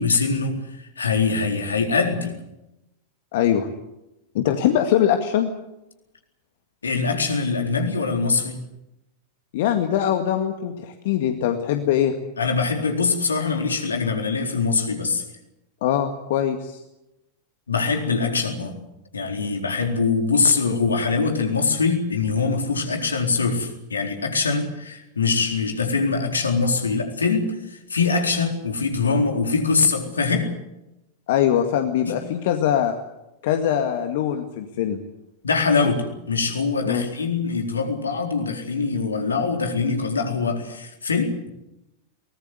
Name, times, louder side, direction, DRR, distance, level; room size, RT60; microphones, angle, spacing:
voice 1, 0.0-2.3 6.8-8.6 12.4-15.2 17.7-18.8 19.1-30.5 32.1-32.2 35.4-41.5, left 4 dB, 75° left, 3 dB, 4.1 m, -23 dB
voice 2, 3.3-3.7 4.3-5.5 9.5-12.1 15.8-16.8 31.3-32.9 33.4-35.0 36.9-37.0, left 10 dB, 55° left, 6 dB, 2.0 m, -22 dB
23.5 x 20.0 x 8.2 m, 0.91 s
figure-of-eight pair, 90°, 0 cm